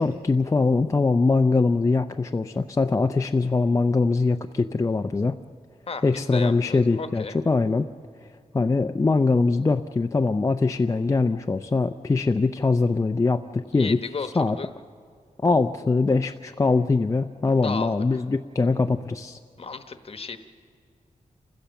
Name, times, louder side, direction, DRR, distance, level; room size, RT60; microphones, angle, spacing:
voice 1, 0.0-5.4 6.0-7.9 8.2-14.6 15.4-19.4, left 3 dB, 25° left, 6 dB, 0.4 m, -22 dB
voice 2, 5.9-7.4 13.7-14.7 17.6-18.2 19.6-20.4, left 4 dB, 45° left, 9 dB, 1.0 m, -34 dB
28.5 x 15.5 x 7.0 m, 2.2 s
wide cardioid pair, 140°, 14 cm